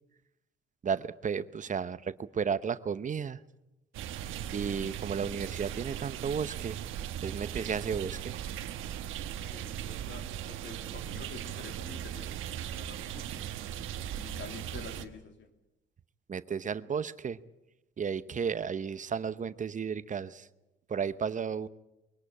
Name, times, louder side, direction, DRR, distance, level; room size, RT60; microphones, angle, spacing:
voice 1, 0.8-3.4 4.5-6.8 7.2-8.3 16.3-17.4 18.0-20.5 20.9-21.7, right 6 dB, 40° right, 0.8 m, -33 dB
sound 1, 3.9-15.1, right 10 dB, 90° right, 1.3 m, -38 dB
voice 2, 9.5-12.3 12.6-13.5 14.1-15.5, left 5 dB, 65° left, 3.2 m, -48 dB
23.5 x 18.0 x 8.7 m
cardioid pair, 90°, 20 cm